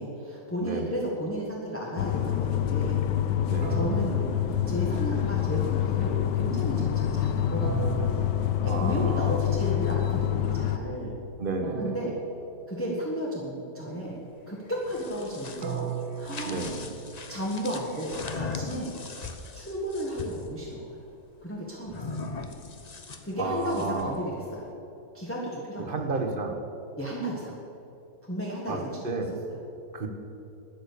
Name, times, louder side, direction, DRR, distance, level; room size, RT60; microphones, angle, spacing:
voice 1, 0.0-3.0 3.7-4.3 4.7-8.1 8.6-11.1 11.7-12.1 12.7-14.2 14.5-16.7 17.3-18.9 19.5-21.0 21.4-22.2 23.2-24.7 25.1-26.2 27.0-27.6 28.2-29.0, equal, 10° left, -4 dB, 1.5 m, -33 dB
voice 2, 0.6-0.9 3.5-3.8 8.6-9.4 11.4-12.0 16.4-16.8 23.4-24.2 25.9-26.6 28.7-28.8 29.0-29.3 29.9-30.1, right 3 dB, 35° right, 4 dB, 1.3 m, -31 dB
sound 1, 2.0-10.8, left 11 dB, 85° left, 1.4 m, -27 dB
sound 2, 3.6-5.7 7.6-9.5 11.6-13.5 15.6-17.8, right 8 dB, 75° right, 1.4 m, -38 dB
sound 3, 14.7-20.5 21.9-24.2, left 4 dB, 40° left, 0.6 m, -39 dB
13.0 x 10.0 x 6.9 m, 3.0 s
omnidirectional pair, 1.9 m